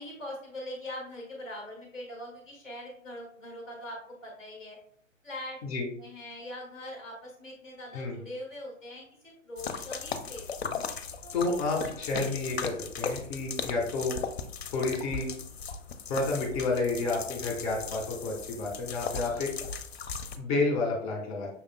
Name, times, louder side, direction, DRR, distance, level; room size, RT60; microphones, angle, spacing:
voice 1, 0.0-4.8 5.2-5.6 6.0-10.5 11.2-12.0 19.2-19.4, left 1 dB, ahead, -2 dB, 0.7 m, -42 dB
sound 1, 9.6-20.4, left 5 dB, 55° left, 0.5 m, -37 dB
voice 2, 11.3-14.2 14.7-15.3 16.1-19.5 20.4-21.5, left 3 dB, 30° left, 0 dB, 1.1 m, -30 dB
5.8 x 3.5 x 2.2 m, 0.62 s
figure-of-eight pair, 120°, 40 cm